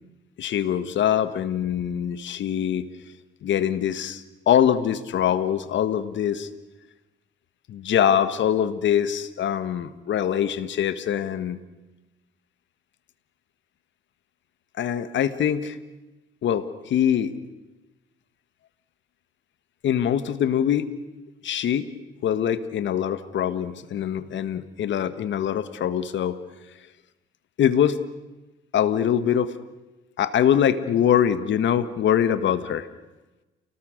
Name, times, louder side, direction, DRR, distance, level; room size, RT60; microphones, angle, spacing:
voice 1, 0.4-2.9 3.4-6.5 7.7-11.6 14.8-15.8 16.4-17.3 19.8-20.9 21.4-21.9 22.2-26.4 27.6-28.0 28.7-29.5 30.2-32.9, left 9 dB, 70° left, 12 dB, 1.6 m, -23 dB
29.0 x 19.0 x 6.6 m, 1.1 s
cardioid pair, 90°, 20 cm